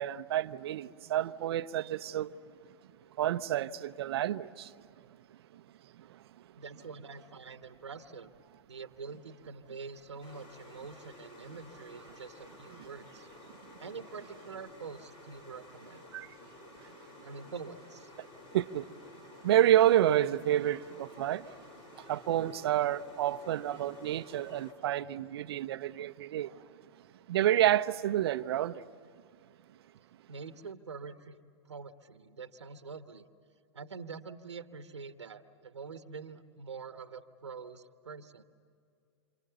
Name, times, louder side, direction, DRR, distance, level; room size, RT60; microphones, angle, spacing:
voice 1, 0.0-2.3 3.2-4.7 5.5-5.6 6.0-6.2 12.8-12.9 16.1-16.3 16.8-16.9 18.2-18.3 18.5-18.9 19.4-21.5 22.0-26.7 27.3-28.8, right 12 dB, 65° right, 0.9 m, -29 dB
voice 2, 6.6-8.3 8.7-13.3 13.8-16.1 17.2-18.1 30.3-31.4 31.6-33.2 33.7-38.4, right 5 dB, 90° right, 1.3 m, -45 dB
sound 1, 10.2-24.7, left 2 dB, 40° left, 6.8 m, -53 dB
29.0 x 28.0 x 6.9 m
hypercardioid pair, 105°, 14 cm